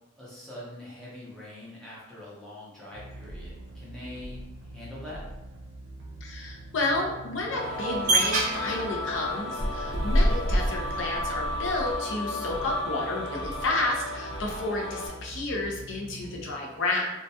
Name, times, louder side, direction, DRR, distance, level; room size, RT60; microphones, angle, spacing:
voice 1, 0.2-4.4 4.7-5.2, left 1 dB, 5° left, -8 dB, 0.6 m, -43 dB
sound 1, 2.9-16.6, right 1 dB, 90° right, 0.5 m, -44 dB
voice 2, 6.2-17.1, left 2 dB, 70° left, -1 dB, 0.5 m, -31 dB
sound 2, 7.5-15.1, left 1 dB, 35° left, 1.1 m, -34 dB
sound 3, 7.7-11.9, right 1 dB, 40° right, 0.3 m, -27 dB
2.2 x 2.1 x 2.7 m, 0.99 s
head